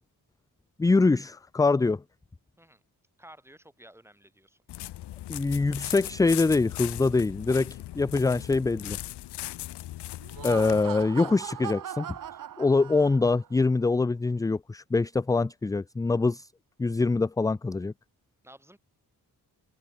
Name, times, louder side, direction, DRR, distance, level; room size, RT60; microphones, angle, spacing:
voice 1, 0.8-2.0 5.3-9.0 10.4-12.1 12.6-16.5 16.8-17.9, left 3 dB, 10° left, 0.3 m, -24 dB
voice 2, 3.2-4.6 18.4-18.8, right 1 dB, 5° right, 8.0 m, -53 dB
sound 1, 4.7-10.8, left 14 dB, 85° left, 1.1 m, -38 dB
Laughter, 10.2-13.5, right 10 dB, 55° right, 0.8 m, -39 dB
cardioid pair, 70°, 40 cm